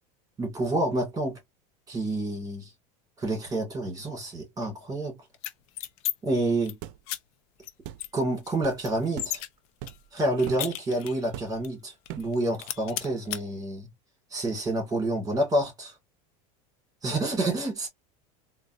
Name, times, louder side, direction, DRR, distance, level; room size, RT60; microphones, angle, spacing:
voice 1, 0.4-1.4 1.9-2.7 3.2-5.2 6.2-6.8 8.1-9.4 10.1-13.9 14.3-15.9 17.0-17.9, right 1 dB, 20° right, 2.0 m, -28 dB
sound 1, 5.3-6.1 6.5-6.7 7.1-7.2 7.6-7.7 8.0-9.5 9.9-11.3 11.6-11.7 12.0-12.3 12.6-13.4, left 13 dB, 65° left, 0.7 m, -34 dB
sound 2, 6.8-7.0 7.8-8.0 8.6-8.8 9.2-9.4 9.8-10.1 10.5-10.7 11.3-11.7 12.1-12.4, right 12 dB, 60° right, 0.5 m, -39 dB
3.9 x 2.2 x 2.6 m
supercardioid pair, 140°, 19 cm